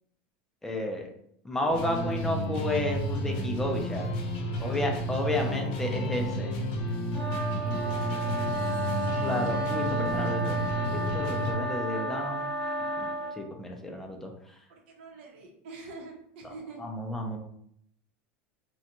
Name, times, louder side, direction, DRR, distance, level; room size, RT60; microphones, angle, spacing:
voice 1, 0.6-1.1 1.4-4.1 4.6-6.5 9.2-12.5 13.0-13.1 13.4-14.3 16.8-17.4, left 1 dB, 5° left, 1 dB, 0.4 m, -32 dB
sound 1, 1.7-11.5, equal, 60° left, 0.6 m, -31 dB
voice 2, 4.4-5.1 7.6-8.8 14.7-16.8, right 3 dB, 80° right, 1 dB, 0.7 m, -47 dB
sound 2, 7.1-13.4, right 1 dB, 20° left, 0.9 m, -32 dB
2.4 x 2.2 x 2.8 m, 0.70 s
supercardioid pair, 160°, 6 cm